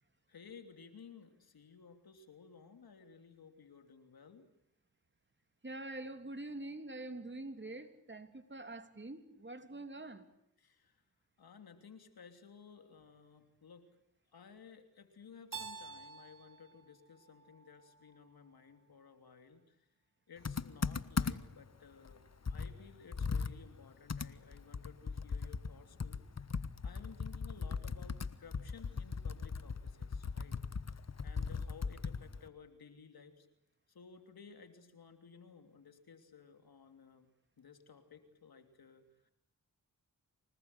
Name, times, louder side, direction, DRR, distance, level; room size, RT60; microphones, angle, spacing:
voice 1, 0.3-4.5 10.6-11.0 11.4-13.9 14.3-19.8 20.3-22.2 22.5-30.6 31.2-33.5 33.9-37.3 37.6-39.3, left 6 dB, 70° left, 7 dB, 3.2 m, -57 dB
voice 2, 5.6-10.3, right 2 dB, 30° right, 7 dB, 3.2 m, -45 dB
Keyboard (musical), 15.5-18.3, right 5 dB, 55° right, 4.1 m, -50 dB
Computer keyboard, 20.4-21.6 22.1-22.2 22.5-25.7 26.0-32.5, left 5 dB, 45° left, 1.3 m, -38 dB
26.0 x 19.0 x 9.9 m, 0.81 s
cardioid pair, 45°, 37 cm